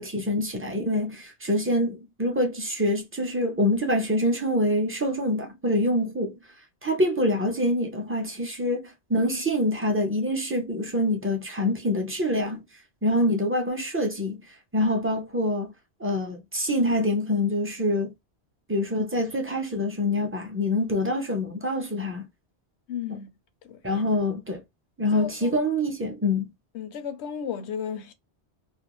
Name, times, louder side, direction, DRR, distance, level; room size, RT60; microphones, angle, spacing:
voice 1, 0.0-6.4 6.8-12.6 13.0-14.4 14.7-15.7 16.0-18.1 18.7-22.3 23.1-23.2 23.8-24.6 25.0-26.5, left 1 dB, 20° right, 0.4 m, -25 dB
voice 2, 22.9-23.3 23.7-23.8 25.1-25.5 26.7-28.1, left 8 dB, 80° left, 0.9 m, -34 dB
2.5 x 2.3 x 3.0 m
omnidirectional pair, 1.1 m